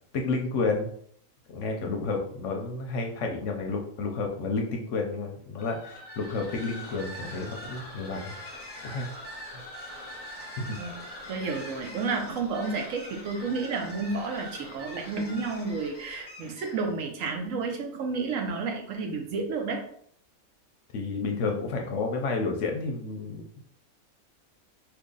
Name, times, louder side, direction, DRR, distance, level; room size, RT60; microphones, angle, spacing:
voice 1, 0.1-0.9 1.5-8.3 8.8-9.1 10.6-10.8 20.9-23.6, left 3 dB, 65° left, 2 dB, 0.9 m, -31 dB
sound 1, 5.6-17.0, left 1 dB, 30° left, 0.9 m, -43 dB
voice 2, 10.8-19.8, right 4 dB, 70° right, 3 dB, 1.0 m, -31 dB
2.9 x 2.6 x 3.7 m, 0.62 s
omnidirectional pair, 1.5 m